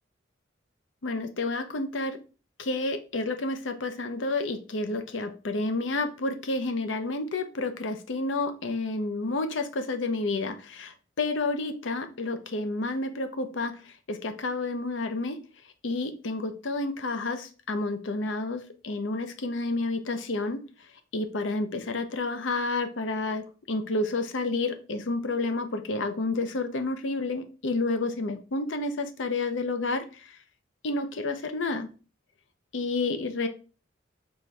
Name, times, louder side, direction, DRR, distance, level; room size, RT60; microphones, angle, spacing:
voice 1, 1.0-2.2 2.6-15.4 15.8-20.6 21.1-30.3 30.8-31.9 32.7-33.5, left 2 dB, 75° left, 8 dB, 0.6 m, -30 dB
4.4 x 3.5 x 3.2 m, 0.35 s
head